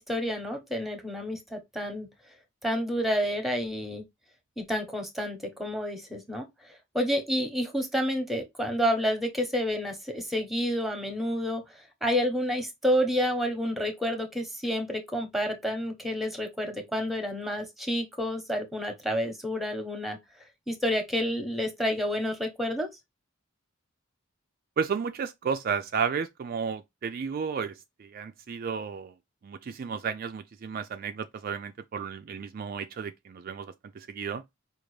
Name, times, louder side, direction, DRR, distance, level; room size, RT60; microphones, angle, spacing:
voice 1, 0.0-2.1 2.6-4.0 4.6-20.2 20.7-22.9, equal, ahead, 0.9 m, -29 dB
voice 2, 24.8-27.7 28.0-29.1 29.4-34.4, right 6 dB, 45° right, 0.3 m, -33 dB
5.1 x 2.5 x 3.1 m
head